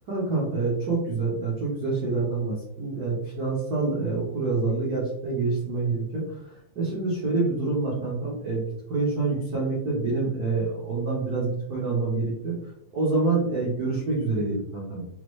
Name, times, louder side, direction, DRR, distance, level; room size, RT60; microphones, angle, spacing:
voice 1, 0.1-6.2 6.8-12.5 12.9-15.0, right 3 dB, 85° right, -7 dB, 0.8 m, -27 dB
5.8 x 2.1 x 3.2 m, 0.75 s
omnidirectional pair, 3.4 m